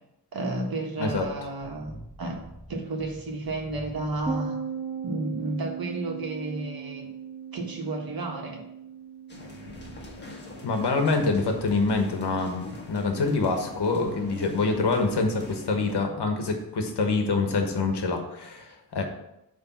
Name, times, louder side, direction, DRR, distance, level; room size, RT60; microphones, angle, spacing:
voice 1, 0.3-2.4 2.7-4.6 5.0-7.1 7.5-8.6, right 2 dB, 55° right, 1 dB, 1.6 m, -32 dB
sound 1, 1.1-4.4 9.7-10.2 11.5-12.0, right 1 dB, ahead, 1.7 m, -46 dB
sound 2, 4.3-13.7, right 7 dB, 15° right, 0.5 m, -39 dB
sound 3, 9.3-16.0, left 2 dB, 25° left, 1.5 m, -44 dB
voice 2, 10.6-19.0, left 3 dB, 65° left, 4 dB, 1.3 m, -26 dB
8.7 x 3.4 x 5.8 m, 0.84 s
wide cardioid pair, 140°, 44 cm